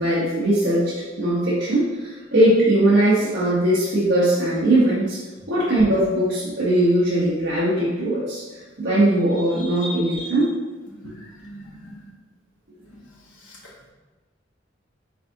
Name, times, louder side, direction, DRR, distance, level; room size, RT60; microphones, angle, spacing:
voice 1, 0.0-5.2 5.5-8.4 8.8-10.5, right 1 dB, 65° right, -9 dB, 1.0 m, -20 dB
voice 2, 11.1-11.9 12.9-13.0, right 1 dB, 70° left, -5 dB, 1.3 m, -41 dB
4.8 x 3.6 x 2.8 m, 1.3 s
head